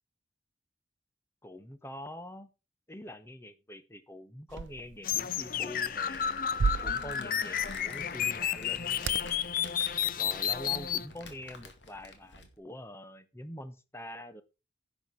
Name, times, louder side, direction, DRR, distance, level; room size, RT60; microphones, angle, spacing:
voice 1, 1.4-2.5 2.9-6.4 6.8-9.5 10.2-14.4, left 1 dB, 15° left, 11 dB, 0.9 m, -45 dB
sound 1, 4.5-11.6, right 5 dB, 75° right, 0.4 m, -39 dB
sound 2, 5.0-11.1, left 9 dB, 45° left, 0.5 m, -31 dB
Crumpling crinkling, 5.9-12.6, left 3 dB, 70° left, 2.2 m, -50 dB
10.5 x 7.2 x 4.6 m, 0.29 s
head